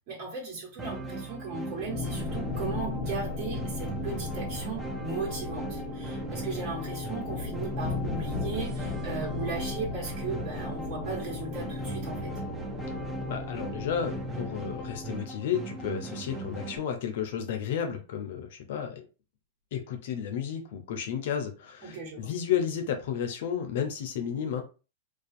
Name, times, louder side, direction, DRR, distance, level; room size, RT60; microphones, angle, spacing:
voice 1, 0.1-12.3 21.8-22.3, right 4 dB, 45° right, 1.4 m, -37 dB
sound 1, 0.8-16.8, right 3 dB, 15° right, 0.5 m, -39 dB
sound 2, 1.8-15.2, left 3 dB, 20° left, 0.8 m, -36 dB
voice 2, 13.3-19.0 19.7-24.6, left 8 dB, 65° left, 0.5 m, -32 dB
2.4 x 2.3 x 2.5 m
hypercardioid pair, 110°, 0 cm